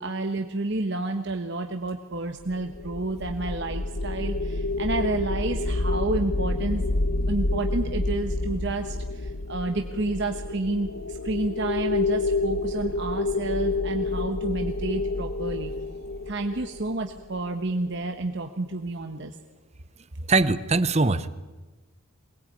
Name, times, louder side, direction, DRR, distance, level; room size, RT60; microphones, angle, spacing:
voice 1, 0.0-6.8 7.3-15.7 16.3-19.3, right 2 dB, 55° right, 5 dB, 1.2 m, -30 dB
sound 1, 2.5-17.7, left 2 dB, 75° left, 1.1 m, -28 dB
voice 2, 20.3-21.3, right 3 dB, 30° right, 14 dB, 0.8 m, -21 dB
23.0 x 20.0 x 9.0 m, 1.2 s
head